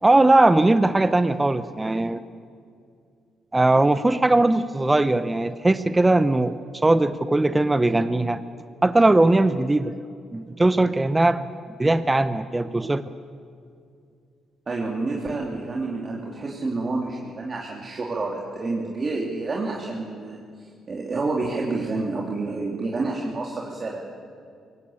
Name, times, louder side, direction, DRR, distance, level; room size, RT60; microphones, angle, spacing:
voice 1, 0.0-2.2 3.5-8.4 8.8-9.9 10.3-11.5 11.8-13.0, right 2 dB, 15° right, 12 dB, 0.8 m, -19 dB
voice 2, 14.7-24.0, right 3 dB, 35° right, -2 dB, 3.0 m, -29 dB
23.0 x 19.0 x 8.7 m, 2.3 s
cardioid pair, 90°, 0 cm